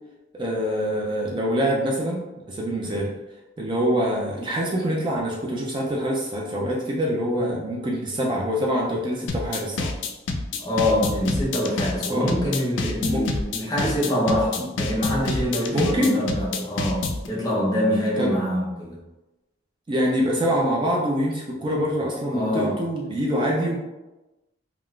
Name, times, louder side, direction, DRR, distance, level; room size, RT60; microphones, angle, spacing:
voice 1, 0.3-3.1 3.6-9.9 12.1-12.3 13.1-13.2 14.6-14.7 15.7-16.2 18.2-18.4 19.9-23.8, equal, 25° right, -2 dB, 0.4 m, -25 dB
sound 1, 9.3-17.3, left 3 dB, 70° left, 0.4 m, -27 dB
voice 2, 10.6-19.0 22.3-22.8, equal, 20° left, -4 dB, 0.7 m, -25 dB
3.6 x 2.3 x 2.3 m, 1.0 s
head